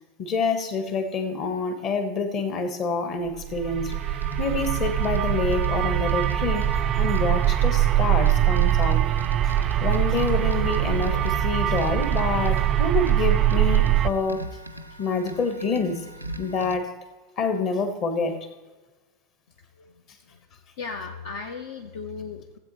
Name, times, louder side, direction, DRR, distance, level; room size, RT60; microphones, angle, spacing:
voice 1, 0.2-3.9 4.4-9.1 9.4-9.5 9.8-14.5 15.0-16.1 16.4-16.9 17.4-18.5, left 4 dB, 35° left, 8 dB, 1.2 m, -27 dB
sound 1, 3.4-14.1, right 12 dB, 30° right, 0.4 m, -22 dB
sound 2, 3.9-16.8, equal, 90° right, 0.6 m, -40 dB
voice 2, 19.7-20.4 20.8-22.6, left 5 dB, 55° left, 5 dB, 0.6 m, -37 dB
16.5 x 7.9 x 3.1 m, 1.2 s
figure-of-eight pair, 85°, 0 cm